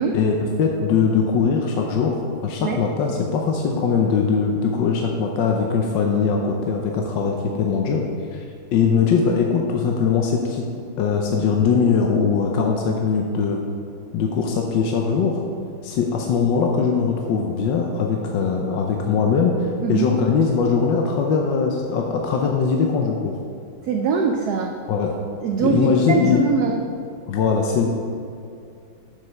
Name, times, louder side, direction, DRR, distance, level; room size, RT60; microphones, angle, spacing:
voice 1, 0.1-8.4 8.7-10.6 11.0-13.6 14.1-15.4 15.8-23.3 24.9-25.2 25.6-26.4 27.3-27.9, left 5 dB, 70° left, 1 dB, 1.3 m, -21 dB
voice 2, 23.9-24.7 25.4-26.8, right 5 dB, 85° right, 3 dB, 0.8 m, -22 dB
7.2 x 6.5 x 5.7 m, 2.5 s
omnidirectional pair, 2.3 m